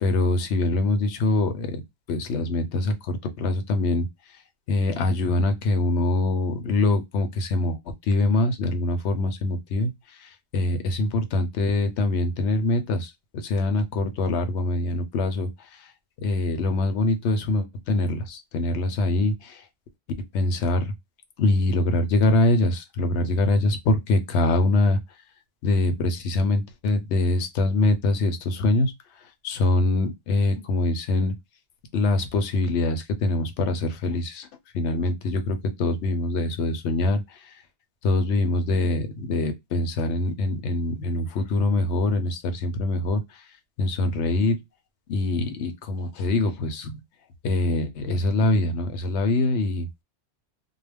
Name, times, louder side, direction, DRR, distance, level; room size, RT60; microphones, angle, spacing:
voice 1, 0.0-1.8 2.1-4.1 4.7-7.8 8.1-9.9 10.5-13.1 13.4-15.5 16.2-19.5 20.3-20.9 21.4-25.0 25.6-28.9 29.4-31.3 31.9-34.5 34.7-37.2 38.0-43.2 43.8-44.6 45.1-46.9 47.4-49.9, left 2 dB, 90° left, 0.9 m, -24 dB
2.3 x 2.1 x 3.2 m
omnidirectional pair, 1.1 m